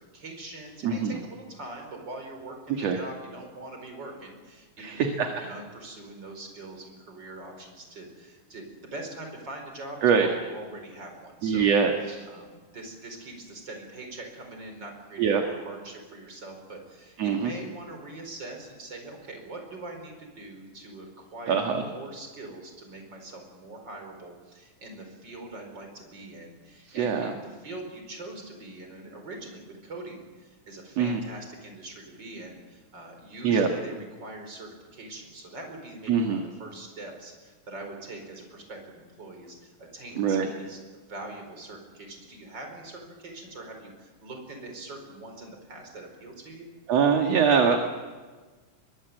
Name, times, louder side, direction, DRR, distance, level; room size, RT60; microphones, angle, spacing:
voice 1, 0.0-11.7 12.3-46.7, right 2 dB, 30° right, 3 dB, 5.1 m, -43 dB
voice 2, 0.8-1.2 2.8-3.0 4.8-5.3 10.0-10.3 11.4-12.2 15.2-15.4 17.2-17.5 21.5-21.8 26.9-27.3 31.0-31.2 33.4-33.7 36.1-36.4 40.2-40.5 46.9-47.8, right 6 dB, 55° right, 3 dB, 2.5 m, -23 dB
23.5 x 22.0 x 8.1 m, 1.4 s
omnidirectional pair, 4.1 m